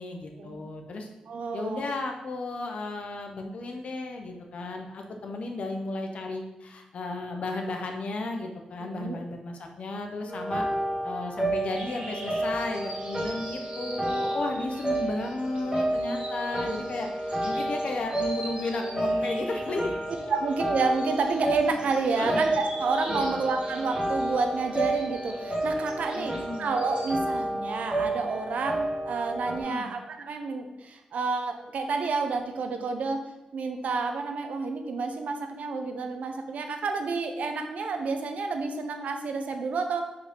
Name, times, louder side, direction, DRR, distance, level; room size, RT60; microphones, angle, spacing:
voice 1, 0.0-1.1 1.5-10.7 11.0-19.9 22.2-22.4 23.1-23.4 26.1-26.7 29.6-29.9, left 2 dB, 55° left, 3 dB, 0.9 m, -34 dB
voice 2, 1.3-1.9 8.8-9.2 16.6-16.8 20.3-26.3 26.6-33.3 33.5-40.0, right 4 dB, 75° right, 5 dB, 0.8 m, -30 dB
sound 1, 10.3-29.6, right 1 dB, 10° right, 2.1 m, -31 dB
sound 2, 11.5-27.2, right 1 dB, 45° right, 1.8 m, -45 dB
4.9 x 4.8 x 5.4 m, 0.98 s
wide cardioid pair, 140°, 2 cm